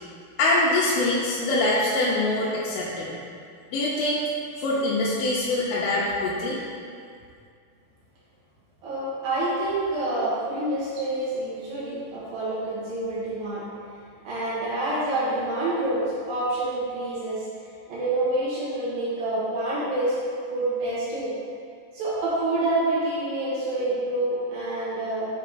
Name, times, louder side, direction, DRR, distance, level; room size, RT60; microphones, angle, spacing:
voice 1, 0.4-3.2 3.7-4.3 4.6-6.6, left 2 dB, 80° left, -6 dB, 2.3 m, -24 dB
voice 2, 8.8-13.7 14.2-17.4 17.9-20.1 20.5-21.3 21.9-25.3, right 2 dB, 90° right, -10 dB, 3.4 m, -27 dB
7.3 x 3.2 x 4.0 m, 2.3 s
omnidirectional pair, 4.0 m